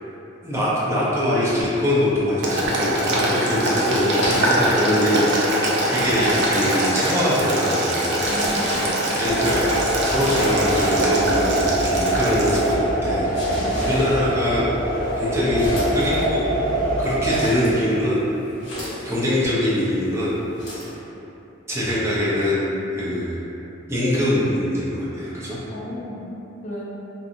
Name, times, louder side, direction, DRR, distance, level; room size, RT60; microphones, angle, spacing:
voice 1, 0.4-8.2 9.1-9.6 10.0-14.6 15.2-15.6 15.9-16.4 17.0-18.3 19.0-20.4 21.7-22.7 22.9-23.4 23.9-25.6, left 1 dB, 15° right, -9 dB, 0.5 m, -23 dB
Boiling, 2.4-12.7, right 1 dB, 60° right, 0.5 m, -23 dB
sound 1, 4.0-21.0, equal, 75° left, 0.9 m, -35 dB
voice 2, 8.2-8.9 9.2-9.4 13.6-13.8 25.7-26.3 26.6-26.8, equal, 40° left, -6 dB, 0.5 m, -34 dB
sound 2, 9.2-17.4, right 1 dB, 85° right, 0.8 m, -24 dB
2.7 x 2.5 x 2.5 m, 3.0 s
head